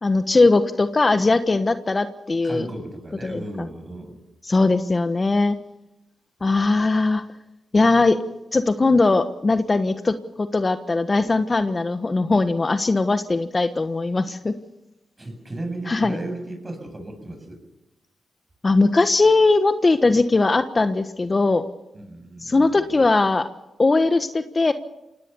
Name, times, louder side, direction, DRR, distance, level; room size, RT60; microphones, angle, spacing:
voice 1, 0.0-2.7 3.2-3.4 4.4-5.6 6.4-7.2 7.7-8.2 8.5-14.5 15.9-16.2 18.6-21.6 22.4-23.5 23.8-24.7, left 3 dB, 35° left, 9 dB, 1.3 m, -20 dB
voice 2, 2.4-4.2 15.2-17.6 21.9-23.0, right 1 dB, 30° right, 6 dB, 7.9 m, -35 dB
25.5 x 18.0 x 7.0 m, 0.94 s
cardioid pair, 55°, 0 cm